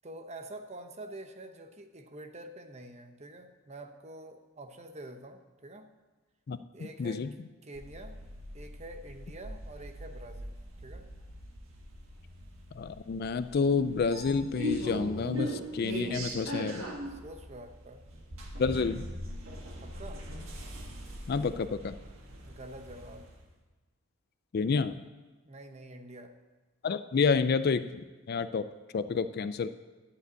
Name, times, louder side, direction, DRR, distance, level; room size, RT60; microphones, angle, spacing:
voice 1, 0.0-5.9 6.7-8.2 8.5-10.5 10.8-11.1 15.9-16.6 17.1-18.0 19.8-20.2 22.4-23.3 25.4-26.3, right 1 dB, 30° right, 7 dB, 0.8 m, -47 dB
sound 1, 7.8-23.4, equal, 75° right, 1.6 m, -40 dB
voice 2, 12.7-16.8 18.6-19.0 21.3-22.0 24.5-25.0 26.8-28.7 28.9-29.7, left 5 dB, 50° left, 13 dB, 0.4 m, -29 dB
11.5 x 5.3 x 8.2 m, 1.2 s
head